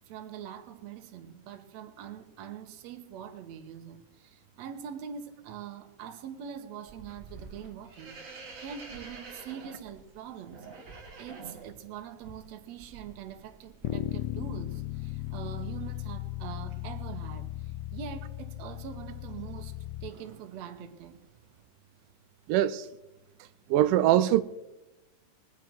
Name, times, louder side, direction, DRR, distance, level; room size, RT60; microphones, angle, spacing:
voice 1, 0.1-10.7 11.2-19.7 20.0-21.2, right 8 dB, 65° right, 2.1 m, -43 dB
sound 1, 6.9-19.8 20.1-20.6 21.0-21.6, right 4 dB, 40° right, 1.1 m, -50 dB
Bass guitar, 13.8-20.1, left 15 dB, 85° left, 2.2 m, -36 dB
voice 2, 22.5-22.9 23.7-24.4, right 13 dB, 90° right, 2.2 m, -22 dB
21.5 x 8.3 x 4.6 m
omnidirectional pair, 3.7 m